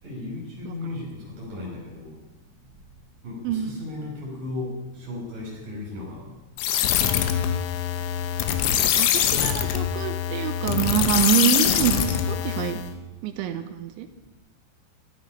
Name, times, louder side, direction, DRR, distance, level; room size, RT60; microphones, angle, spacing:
voice 1, 0.0-2.1 3.2-6.3, left 2 dB, 45° right, -3 dB, 7.4 m, -35 dB
voice 2, 3.4-3.8 8.9-12.8 13.2-14.1, right 9 dB, 80° right, 8 dB, 3.2 m, -26 dB
sound 1, 6.6-12.9, left 10 dB, 85° left, 3.7 m, -24 dB
18.0 x 13.5 x 5.7 m, 1.1 s
omnidirectional pair, 5.6 m